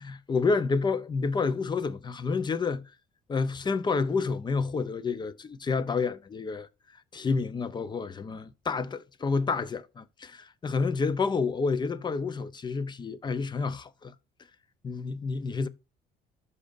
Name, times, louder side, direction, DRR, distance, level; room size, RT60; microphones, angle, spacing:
voice 1, 0.0-2.8 3.3-6.7 7.1-14.1 14.8-15.7, left 4 dB, 25° left, 0.6 m, -29 dB
12.0 x 4.2 x 2.6 m
cardioid pair, 110°, 17 cm